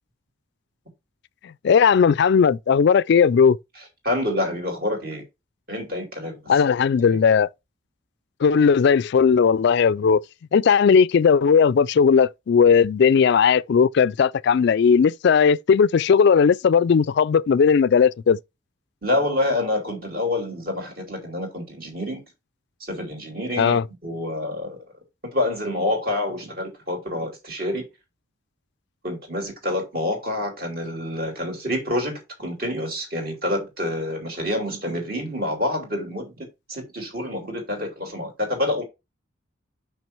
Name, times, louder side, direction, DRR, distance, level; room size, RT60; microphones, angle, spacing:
voice 1, 1.6-3.6 6.5-7.5 8.4-10.2 10.5-18.4 23.6-23.8, left 6 dB, 55° left, 0.3 m, -17 dB
voice 2, 4.0-5.2 5.7-6.3 7.1-7.2 19.0-22.2 22.8-24.8 25.3-27.8 29.0-38.8, left 1 dB, 45° right, 2.9 m, -27 dB
6.1 x 5.8 x 4.5 m
head